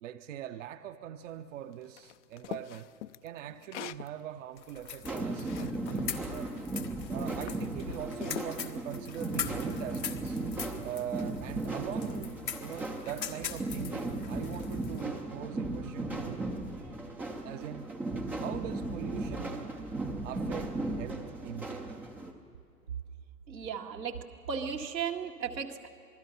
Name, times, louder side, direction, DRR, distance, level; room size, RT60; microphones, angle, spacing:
voice 1, 0.0-2.9 3.2-6.5 7.1-10.4 10.8-16.4 17.4-17.9 18.4-19.8 20.2-22.0, right 11 dB, 50° right, 9 dB, 0.8 m, -42 dB
sound 1, 2.0-4.1 4.6-6.1 6.9-7.1 7.5-8.5, left 13 dB, 50° left, 0.6 m, -43 dB
sound 2, 4.6-15.0, left 8 dB, 85° left, 1.6 m, -42 dB
sound 3, 5.0-22.3, right 2 dB, 5° right, 0.4 m, -36 dB
voice 2, 23.5-25.9, right 6 dB, 85° right, 2 dB, 2.2 m, -36 dB
27.5 x 20.0 x 5.8 m, 2.7 s
hypercardioid pair, 120°, 49 cm